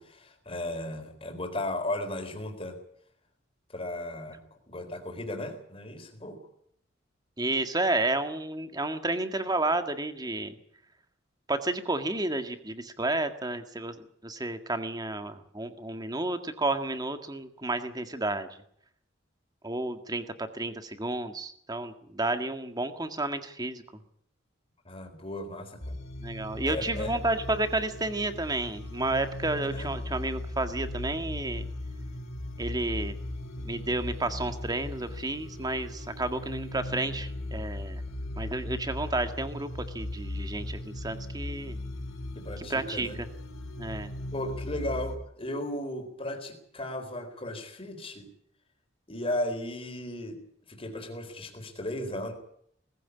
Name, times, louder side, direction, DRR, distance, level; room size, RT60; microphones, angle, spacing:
voice 1, 0.0-2.8 3.7-4.4 4.7-6.4 24.8-26.0 26.7-27.1 29.7-29.9 42.4-43.2 44.3-48.3 49.1-50.4 50.7-52.3, left 1 dB, 30° left, 4 dB, 4.1 m, -35 dB
voice 2, 7.4-10.6 11.5-18.5 19.6-23.8 26.2-31.7 32.6-33.2 33.6-38.0 38.4-39.7 39.9-41.8 42.6-43.1 43.8-44.1, right 2 dB, 20° right, 8 dB, 1.9 m, -31 dB
sound 1, 25.8-45.2, left 1 dB, 85° left, 3.2 m, -38 dB
20.0 x 15.0 x 9.7 m, 0.68 s
head